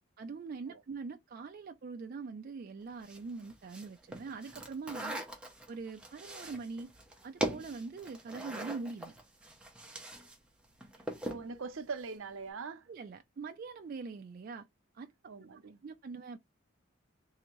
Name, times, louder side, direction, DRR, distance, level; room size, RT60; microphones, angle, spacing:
voice 1, 0.2-5.3 5.7-6.9 7.2-9.1 12.9-14.7 14.9-15.1 15.6-16.4, right 4 dB, 45° right, 0.3 m, -43 dB
sound 1, 3.0-10.4 10.6-11.5, right 1 dB, 5° right, 0.7 m, -41 dB
voice 2, 11.2-12.9 15.3-15.8, right 4 dB, 75° right, 0.6 m, -41 dB
3.4 x 2.8 x 3.0 m
head